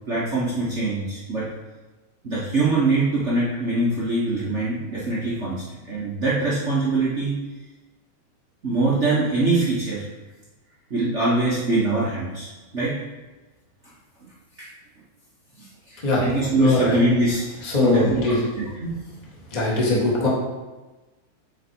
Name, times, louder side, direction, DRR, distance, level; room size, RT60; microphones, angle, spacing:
voice 1, 0.1-1.5 2.2-7.3 8.6-10.0 10.9-12.9 14.6-14.7 15.6-18.9, right 2 dB, 45° right, -8 dB, 0.9 m, -23 dB
voice 2, 16.5-17.0 17.6-18.4 19.5-20.3, left 2 dB, 25° left, -5 dB, 0.9 m, -21 dB
7.9 x 4.5 x 4.6 m, 1.2 s
omnidirectional pair, 3.5 m